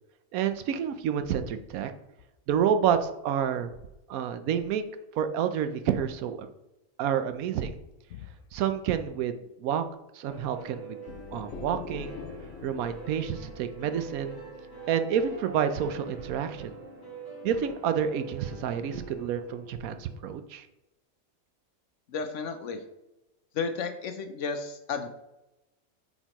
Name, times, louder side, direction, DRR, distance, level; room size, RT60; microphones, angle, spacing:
voice 1, 0.3-1.9 2.5-3.7 4.1-4.8 5.2-6.5 7.0-7.8 8.5-9.8 10.1-11.0 11.3-12.2 12.6-14.4 14.9-16.8 17.4-20.7, right 8 dB, 80° right, 9 dB, 1.0 m, -29 dB
sound 1, 10.3-20.2, right 4 dB, 15° left, 1.9 m, -44 dB
sound 2, 11.1-14.8, left 7 dB, 90° left, 1.1 m, -44 dB
voice 2, 22.1-22.8 23.5-25.1, left 5 dB, 65° left, 8 dB, 0.9 m, -33 dB
7.8 x 4.1 x 3.0 m, 0.92 s
omnidirectional pair, 1.5 m